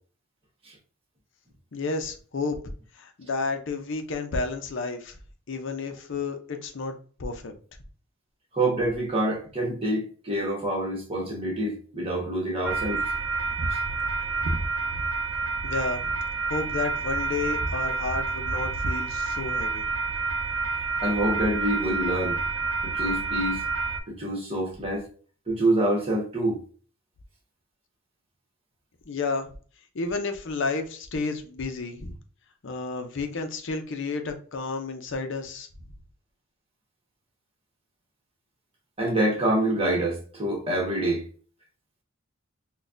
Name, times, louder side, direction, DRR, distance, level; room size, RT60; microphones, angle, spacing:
voice 1, 1.7-2.6 2.9-5.2 5.5-6.9 7.2-7.5 15.6-16.1 16.5-19.9 29.1-29.5 29.9-32.2 32.6-35.7, left 3 dB, 60° left, 0.6 m, -31 dB
voice 2, 8.5-13.0 13.7-13.8 21.0-22.4 22.8-23.6 24.1-25.1 25.5-26.6 39.0-41.2, right 1 dB, 25° right, 1.2 m, -26 dB
sound 1, 12.6-24.0, right 4 dB, 80° right, 0.6 m, -28 dB
4.0 x 2.3 x 2.5 m
head